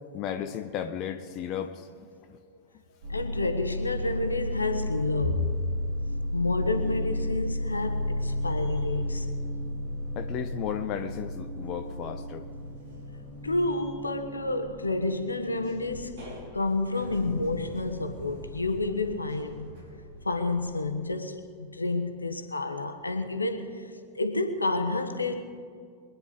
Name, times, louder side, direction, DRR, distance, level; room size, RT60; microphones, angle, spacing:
voice 1, 0.1-1.9 2.3-2.4 10.2-12.5, left 9 dB, 40° left, 8 dB, 0.7 m, -34 dB
sound 1, 3.0-21.0, left 1 dB, 55° right, 4.2 m, -34 dB
voice 2, 3.1-5.6 6.3-9.3 13.4-16.2 16.5-19.7 20.2-25.3, left 2 dB, 80° left, 7 dB, 1.3 m, -30 dB
24.0 x 9.8 x 5.0 m, 2.1 s
figure-of-eight pair, 90°, 0 cm